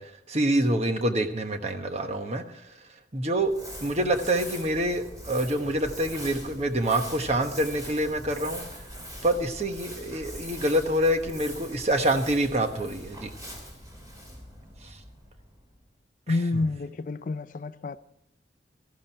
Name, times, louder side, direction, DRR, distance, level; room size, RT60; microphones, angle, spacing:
voice 1, 0.0-2.6 3.1-3.5 3.8-8.6 9.2-13.3 14.8-15.0 16.3-16.6, right 1 dB, 40° right, 1.2 m, -26 dB
Crumpling crinkling, 3.4-15.8, equal, 20° right, 3.3 m, -42 dB
voice 2, 16.3-18.0, left 3 dB, 50° left, 0.4 m, -28 dB
13.5 x 12.0 x 4.5 m
head